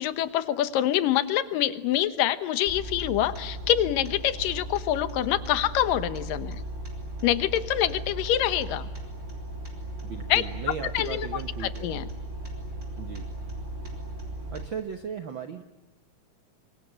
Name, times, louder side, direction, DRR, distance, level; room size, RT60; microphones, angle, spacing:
voice 1, 0.0-6.6 7.2-8.9 10.3-10.4 10.9-12.0, left 12 dB, 90° left, 13 dB, 2.8 m, -26 dB
sound 1, 2.7-14.7, right 1 dB, 20° right, 5.0 m, -37 dB
voice 2, 10.0-11.9 13.0-13.3 14.5-15.6, right 7 dB, 70° right, 7 dB, 1.2 m, -36 dB
26.0 x 23.5 x 9.8 m, 0.98 s
omnidirectional pair, 3.8 m